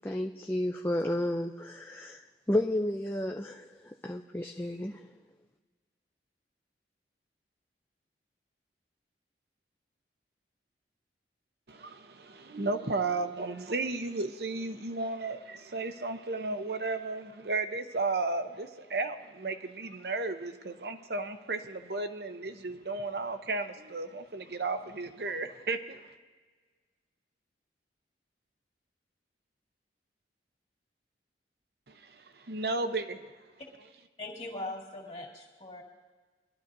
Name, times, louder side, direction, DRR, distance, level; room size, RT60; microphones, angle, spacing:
voice 1, 0.0-2.2 2.5-5.0, left 1 dB, 10° left, 0.5 m, -32 dB
voice 2, 11.7-26.1 31.9-33.2, right 3 dB, 60° right, 0.8 m, -34 dB
voice 3, 34.2-35.8, left 2 dB, 35° left, 2.2 m, -40 dB
23.0 x 12.5 x 2.7 m
head